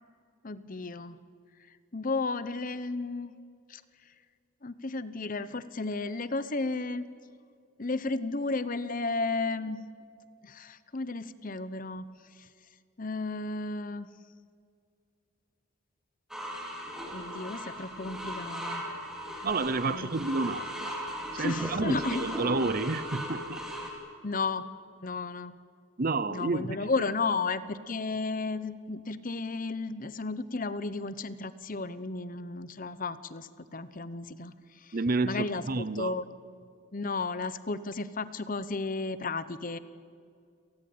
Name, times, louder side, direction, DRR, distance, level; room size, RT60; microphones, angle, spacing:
voice 1, 0.4-1.2 1.9-3.3 3.7-3.8 4.6-7.0 7.8-9.8 10.4-12.0 12.4-12.5 13.0-14.1 17.1-18.8 19.4-19.5 19.9-20.1 21.4-22.2 24.2-24.6 25.0-25.6 26.3-34.9 35.2-36.3 36.9-39.8, left 3 dB, 40° left, 14 dB, 0.9 m, -33 dB
sound 1, 16.3-23.9, equal, ahead, 4.0 m, -37 dB
voice 2, 19.4-21.0 21.3-23.6 26.0-27.0 34.9-36.2, right 3 dB, 40° right, 17 dB, 0.7 m, -30 dB
29.5 x 19.0 x 8.7 m, 2.3 s
head